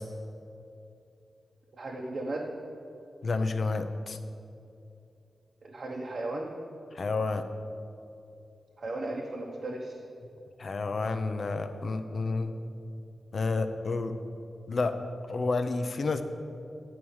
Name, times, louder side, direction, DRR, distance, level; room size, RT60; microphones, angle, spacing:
voice 1, 1.7-2.5 5.6-6.5 8.8-10.0, right 2 dB, 60° right, -2 dB, 0.8 m, -35 dB
voice 2, 3.2-4.2 6.9-7.5 10.6-12.6 13.3-14.2 14.7-15.0 15.3-16.2, left 3 dB, 55° left, 8 dB, 0.5 m, -30 dB
9.0 x 4.8 x 7.1 m, 2.7 s
wide cardioid pair, 95°, 0 cm